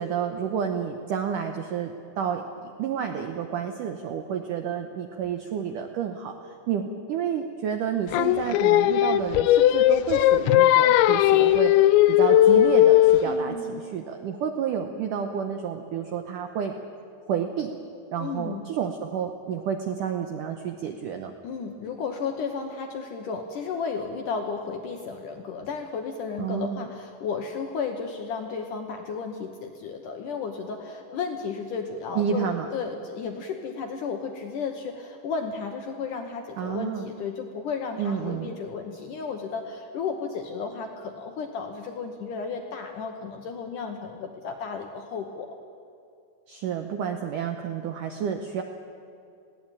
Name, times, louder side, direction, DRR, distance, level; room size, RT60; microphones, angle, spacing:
voice 1, 0.0-11.7 12.1-16.7 17.3-17.7 18.1-21.3 26.4-26.9 32.2-32.7 36.6-37.1 38.0-38.5 46.5-48.6, right 8 dB, 85° right, 5 dB, 1.8 m, -30 dB
Singing, 8.1-13.3, left 13 dB, 90° left, 2.9 m, -18 dB
voice 2, 13.2-13.9 18.2-18.6 21.4-45.6, left 5 dB, 70° left, 4 dB, 2.0 m, -33 dB
20.5 x 16.5 x 9.0 m, 2.6 s
omnidirectional pair, 5.0 m